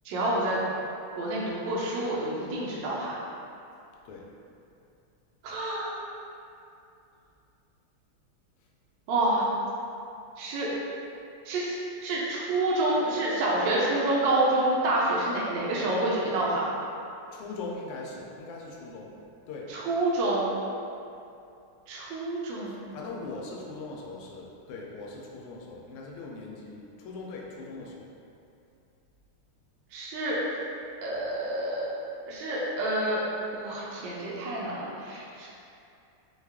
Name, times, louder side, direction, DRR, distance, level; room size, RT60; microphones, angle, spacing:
voice 1, 0.0-0.6 1.2-3.2 5.4-6.0 9.1-9.4 10.4-10.7 11.4-16.7 19.7-20.5 21.9-22.8 29.9-30.4 31.0-31.9 32.3-33.2 33.5-35.6, right 2 dB, 70° right, -6 dB, 1.2 m, -28 dB
voice 2, 17.3-19.1 19.5-19.7 22.7-28.1, left 3 dB, 85° left, -2 dB, 1.5 m, -40 dB
4.6 x 2.3 x 3.4 m, 2.6 s
omnidirectional pair, 2.4 m